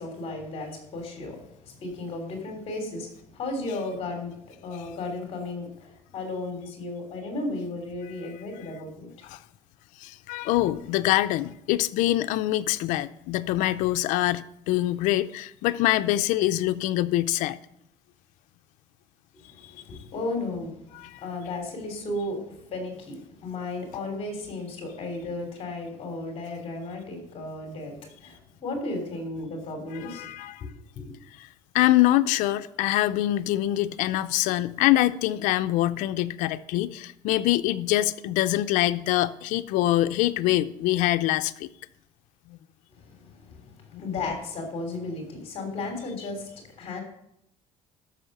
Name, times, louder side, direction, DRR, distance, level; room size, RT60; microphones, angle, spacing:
voice 1, 0.0-9.3 10.5-10.6 19.3-30.3 30.6-30.7 30.9-31.1 42.9-47.0, left 2 dB, 50° left, 3.2 m, -35 dB
voice 2, 10.0-17.6 19.6-19.7 20.9-21.2 30.0-30.6 31.4-31.5 31.7-41.7 42.5-42.6 43.9-44.0, left 15 dB, 85° left, 0.5 m, -24 dB
13.0 x 6.4 x 6.7 m
cardioid pair, 125°, 13 cm